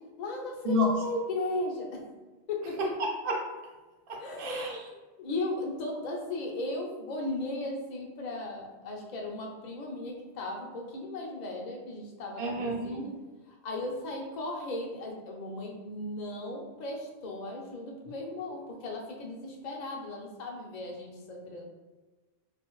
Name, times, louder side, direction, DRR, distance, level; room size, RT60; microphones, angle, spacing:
voice 1, 0.2-2.0 2.5-2.8 4.2-4.9 5.2-13.1 13.5-21.6, left 2 dB, 50° left, 0 dB, 0.6 m, -36 dB
voice 2, 2.8-3.3 4.1-4.8 12.4-13.0, left 1 dB, 60° right, 0 dB, 0.8 m, -30 dB
2.6 x 2.4 x 3.0 m, 1.2 s
omnidirectional pair, 1.1 m